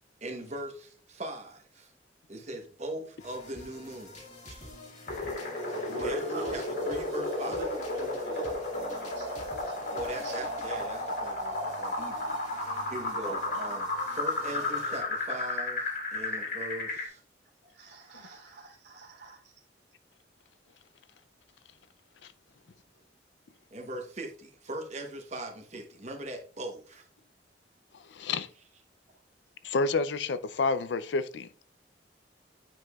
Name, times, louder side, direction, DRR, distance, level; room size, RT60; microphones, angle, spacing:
voice 1, 0.2-1.9 2.3-4.7 6.0-7.6 9.9-17.2 23.7-27.1, right 1 dB, 40° right, 1.0 m, -40 dB
sound 1, 3.2-15.2, left 2 dB, 40° left, 1.6 m, -48 dB
sound 2, 5.1-17.1, left 2 dB, 55° left, 1.9 m, -33 dB
voice 2, 5.9-7.0 7.4-10.5 13.2-13.6 17.6-19.5, right 2 dB, 65° right, 2.1 m, -43 dB
voice 3, 28.1-28.5 29.6-31.6, left 3 dB, 75° left, 0.5 m, -29 dB
8.8 x 4.8 x 2.4 m
head